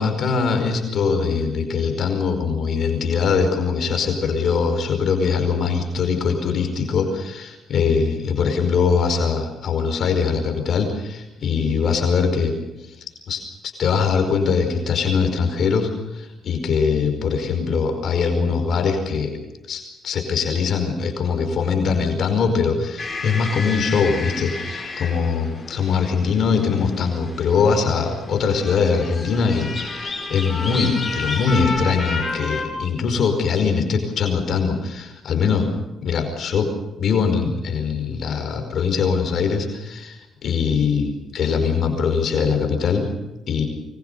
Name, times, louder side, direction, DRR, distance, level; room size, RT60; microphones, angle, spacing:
voice 1, 0.0-12.5 12.8-19.3 19.7-35.7 36.0-36.7 37.0-43.1 43.5-43.7, left 5 dB, 65° left, 5 dB, 5.0 m, -22 dB
sound 1, 23.0-32.6, left 3 dB, 25° left, 7.5 m, -31 dB
24.5 x 22.0 x 6.9 m, 1.0 s
cardioid pair, 90°, 0 cm